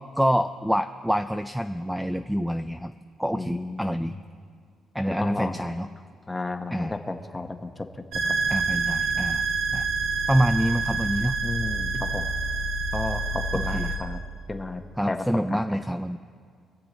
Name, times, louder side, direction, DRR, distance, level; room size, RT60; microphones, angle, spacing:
voice 1, 0.2-2.9 3.2-4.2 4.9-5.9 6.7-7.0 8.5-9.5 9.7-9.9 10.3-11.4 11.9-12.0 13.5-13.9 15.0-16.2, equal, ahead, 8 dB, 0.3 m, -26 dB
voice 2, 3.3-4.1 5.1-5.6 6.3-7.7 8.3-8.4 11.4-12.3 12.9-14.2 14.5-14.8 15.1-15.2 15.5-15.8, left 2 dB, 15° left, 6 dB, 0.9 m, -32 dB
sound 1, 8.1-14.0, right 4 dB, 85° right, 2.7 m, -27 dB
23.5 x 8.1 x 4.0 m, 2.2 s
cardioid pair, 135°, 0 cm